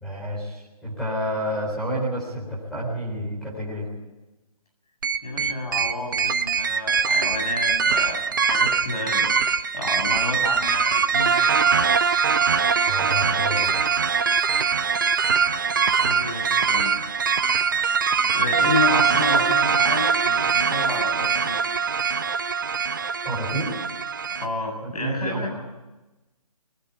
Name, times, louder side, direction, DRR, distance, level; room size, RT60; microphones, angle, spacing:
voice 1, 0.0-3.9 12.9-13.7 23.2-23.7 24.8-25.6, equal, ahead, -6 dB, 4.0 m, -29 dB
sound 1, 5.0-24.5, right 6 dB, 30° right, 0.7 m, -22 dB
voice 2, 5.2-11.7 15.9-16.9 18.2-21.6 24.4-25.5, left 2 dB, 75° left, 3 dB, 7.6 m, -30 dB
21.0 x 14.5 x 9.4 m, 1.1 s
hypercardioid pair, 170°, 20 cm